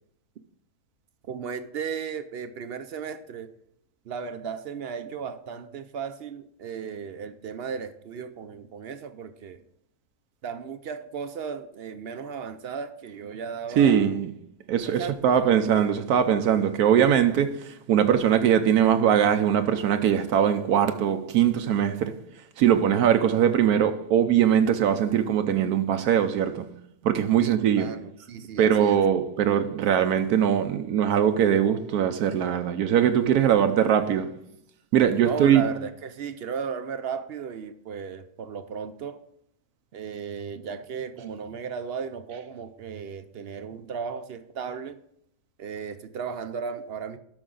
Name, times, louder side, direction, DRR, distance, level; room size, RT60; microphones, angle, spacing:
voice 1, 1.2-3.5 4.1-9.6 10.4-14.1 14.9-15.6 27.4-29.0 35.2-39.2 39.9-45.0 45.6-47.2, right 6 dB, 60° right, 0.6 m, -35 dB
voice 2, 13.8-14.3 14.7-22.2 22.6-26.8 27.0-27.9 28.6-34.4 34.9-35.6, right 9 dB, 85° right, 1.2 m, -21 dB
12.0 x 6.2 x 3.8 m
omnidirectional pair, 1.6 m